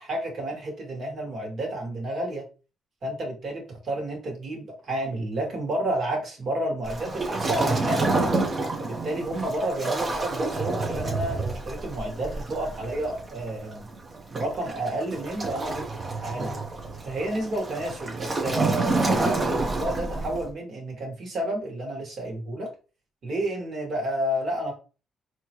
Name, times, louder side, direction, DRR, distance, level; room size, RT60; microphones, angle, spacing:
voice 1, 0.0-2.4 3.0-8.4 8.8-13.9 14.3-15.8 16.2-16.6 17.0-22.7 23.2-24.7, right 1 dB, 55° right, 0 dB, 2.1 m, -31 dB
Waves surf, 6.8-20.5, right 2 dB, 35° right, 1.1 m, -29 dB
4.3 x 3.0 x 3.1 m, 0.33 s
cardioid pair, 90°, 0 cm